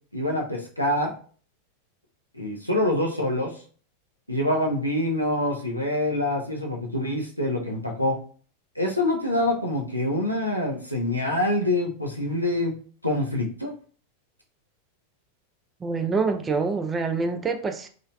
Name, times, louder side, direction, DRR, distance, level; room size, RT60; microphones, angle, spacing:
voice 1, 0.1-1.1 2.3-3.5 4.3-8.2 8.8-12.7 13.0-13.7, left 1 dB, 90° left, 0 dB, 0.6 m, -25 dB
voice 2, 15.8-17.9, right 4 dB, 15° right, 6 dB, 0.3 m, -26 dB
3.0 x 2.4 x 2.3 m, 0.42 s
figure-of-eight pair, 90°, 0 cm